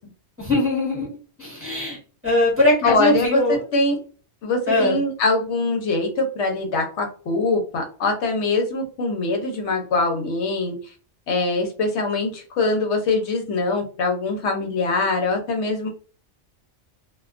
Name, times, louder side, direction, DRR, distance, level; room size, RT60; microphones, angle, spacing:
voice 1, 0.4-1.1 1.4-3.6 4.7-5.0, left 1 dB, 10° right, -6 dB, 1.0 m, -21 dB
voice 2, 2.8-4.0 4.4-10.8 11.3-15.9, left 3 dB, 80° left, 2 dB, 1.0 m, -23 dB
2.3 x 2.2 x 2.4 m, 0.39 s
omnidirectional pair, 1.1 m